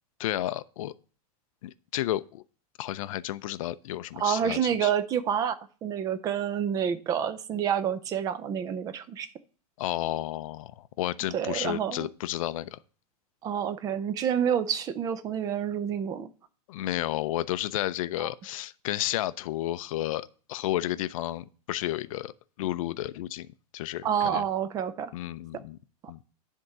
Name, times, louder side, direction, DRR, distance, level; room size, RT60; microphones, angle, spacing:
voice 1, 0.2-0.9 1.6-2.4 2.8-4.9 9.8-12.8 16.7-22.3 22.6-23.5 23.7-24.4 25.1-25.8 26.1-26.2, left 14 dB, 55° left, 0.5 m, -32 dB
voice 2, 4.2-9.3 11.3-12.1 13.4-16.3 18.2-18.3 24.0-25.1, right 8 dB, 20° right, 0.5 m, -28 dB
10.5 x 3.7 x 5.4 m
supercardioid pair, 155°, 20 cm